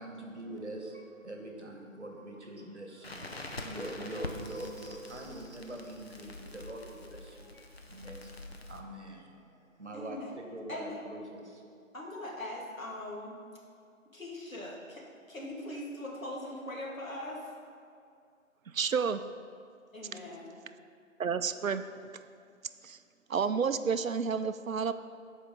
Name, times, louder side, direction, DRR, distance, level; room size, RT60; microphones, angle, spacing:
voice 1, 0.0-11.6, right 1 dB, 55° right, 2 dB, 1.4 m, -44 dB
Crackle, 3.0-8.8, left 2 dB, 50° left, 0.7 m, -45 dB
voice 2, 3.6-4.0 9.9-10.4 10.7-11.0 11.9-13.4 14.1-17.5 19.9-20.5, left 1 dB, 75° left, -3 dB, 2.1 m, -41 dB
voice 3, 18.7-19.2 21.2-21.8 22.8-23.0 23.3-24.9, right 6 dB, 75° right, 11 dB, 0.5 m, -30 dB
12.5 x 5.0 x 3.7 m, 2.4 s
figure-of-eight pair, 160°, 41 cm